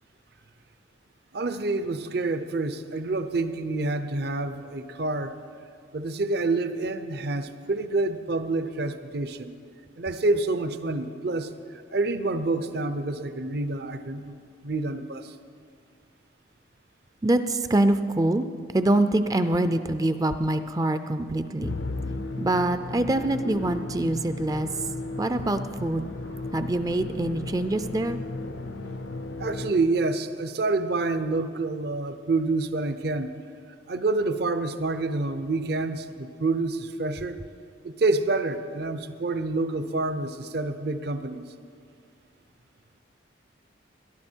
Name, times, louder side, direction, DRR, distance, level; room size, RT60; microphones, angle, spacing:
voice 1, 1.3-5.4 5.9-9.5 10.0-11.5 11.9-14.3 14.6-15.3 29.4-33.4 33.9-37.4 37.8-41.4, right 3 dB, 55° right, 11 dB, 0.7 m, -27 dB
voice 2, 17.2-18.5 18.7-21.8 22.4-24.7 25.2-26.1 26.5-28.2, right 1 dB, 20° right, 10 dB, 0.4 m, -25 dB
Musical instrument, 21.6-30.1, left 2 dB, 75° left, 0.7 m, -35 dB
18.5 x 11.5 x 4.5 m, 2.3 s
head